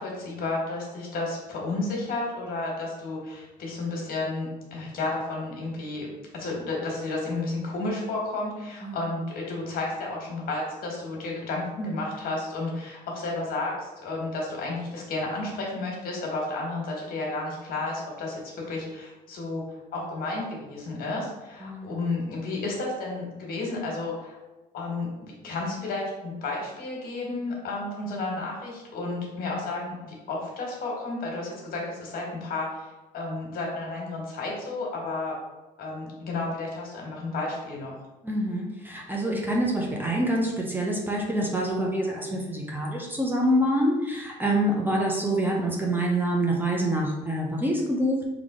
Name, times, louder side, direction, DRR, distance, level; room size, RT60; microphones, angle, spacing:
voice 1, 0.0-6.1 6.3-19.6 19.9-24.4 24.7-32.9 33.1-35.4 35.8-37.9, left 2 dB, 60° left, -2 dB, 1.5 m, -32 dB
voice 2, 21.6-22.0 38.2-48.2, right 1 dB, 10° right, -2 dB, 0.7 m, -26 dB
3.9 x 2.9 x 3.7 m, 1.1 s
cardioid pair, 110°, 17 cm